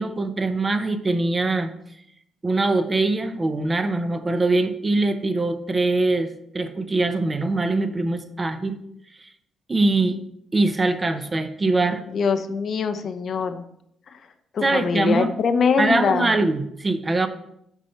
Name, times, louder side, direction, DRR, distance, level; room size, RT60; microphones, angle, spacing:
voice 1, 0.0-1.7 2.4-8.8 9.2-9.3 9.7-10.2 10.5-12.0 14.6-15.3 15.8-17.3, right 2 dB, 25° right, 9 dB, 0.7 m, -22 dB
voice 2, 12.1-13.6 14.1-14.2 14.5-16.3, left 5 dB, 55° left, 9 dB, 0.6 m, -23 dB
7.2 x 5.4 x 4.4 m, 0.75 s
cardioid pair, 90°, 0 cm